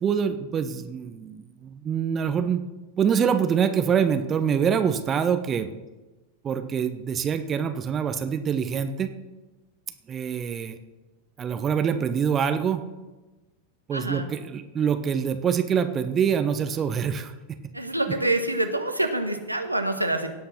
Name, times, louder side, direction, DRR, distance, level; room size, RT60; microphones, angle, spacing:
voice 1, 0.0-2.6 3.0-5.7 6.4-9.1 10.1-10.8 11.4-12.8 13.9-17.3, right 7 dB, 25° right, 9 dB, 0.9 m, -25 dB
voice 2, 13.9-14.3 17.7-20.3, right 2 dB, 85° right, 5 dB, 1.2 m, -26 dB
17.0 x 5.8 x 5.9 m, 1.1 s
figure-of-eight pair, 90°, 0 cm